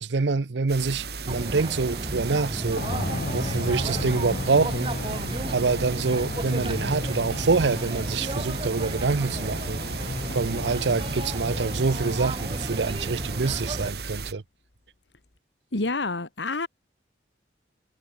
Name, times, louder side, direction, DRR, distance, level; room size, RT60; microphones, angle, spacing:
voice 1, 0.0-2.8 3.3-4.9 5.5-9.8 10.3-14.4, right 4 dB, 80° right, 0.7 m, -26 dB
sound 1, 0.7-14.3, right 4 dB, 60° right, 2.7 m, -36 dB
sound 2, 1.3-13.9, right 1 dB, 30° right, 2.1 m, -33 dB
sound 3, 2.8-12.7, left 2 dB, 65° left, 1.4 m, -35 dB
voice 2, 15.7-16.7, left 3 dB, 85° left, 2.2 m, -28 dB
head